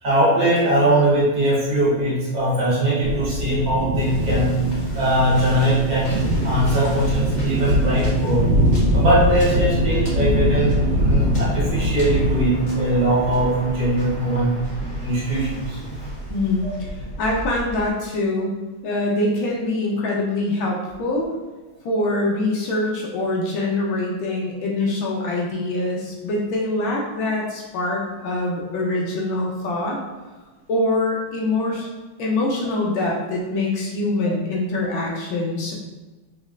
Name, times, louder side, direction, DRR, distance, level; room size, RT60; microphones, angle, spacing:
voice 1, 0.0-4.6 4.9-6.2 6.4-8.5 8.9-14.5 15.0-15.8 16.6-16.7, right 1 dB, 55° right, -7 dB, 1.8 m, -21 dB
sound 1, 3.0-12.3, equal, 85° right, 1.5 m, -22 dB
Waves surf, 3.9-17.9, equal, 25° left, 1.1 m, -32 dB
voice 2, 16.3-16.7 17.2-21.3 21.8-30.0 30.7-31.9 32.2-35.7, left 2 dB, 75° left, -2 dB, 1.5 m, -24 dB
5.2 x 3.1 x 2.4 m, 1.2 s
omnidirectional pair, 2.4 m